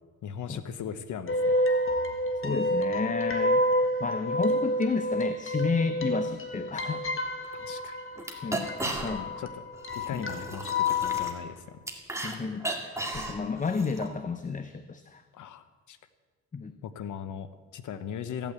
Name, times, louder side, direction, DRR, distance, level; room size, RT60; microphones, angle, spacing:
voice 1, 0.2-1.6 7.6-8.0 8.8-9.0 9.4-9.5 9.9-11.8 15.3-16.0 16.8-18.5, left 8 dB, 85° left, 12 dB, 1.1 m, -38 dB
sound 1, 1.3-11.3, left 1 dB, 45° left, 1.6 m, -29 dB
voice 2, 2.4-3.6 4.0-7.0 8.4-9.3 10.1-10.3 12.2-15.2 16.5-16.8, left 4 dB, 25° left, 10 dB, 0.7 m, -31 dB
sound 2, 7.4-7.5 7.8-7.9 8.2-9.4 9.7-12.3 12.6-14.1, right 2 dB, 10° right, 2.1 m, -35 dB
15.5 x 8.9 x 8.2 m, 1.4 s
cardioid pair, 105°, 29 cm